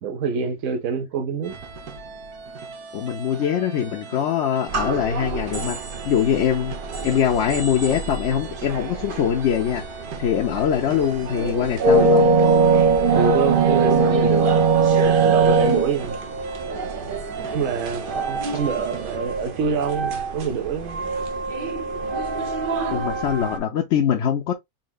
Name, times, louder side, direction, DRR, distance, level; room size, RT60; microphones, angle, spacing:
voice 1, 0.0-1.5 13.1-14.7 15.0-16.2 17.5-21.1, right 6 dB, 65° right, 1.1 m, -26 dB
sound 1, 1.4-19.2, right 4 dB, 85° right, 1.4 m, -41 dB
voice 2, 2.9-5.8 6.0-6.8 7.0-9.8 10.2-12.3 22.9-24.5, left 9 dB, 60° left, 0.8 m, -22 dB
sound 2, 4.7-23.6, right 4 dB, 45° right, 0.8 m, -22 dB
4.2 x 3.6 x 2.3 m
omnidirectional pair, 1.5 m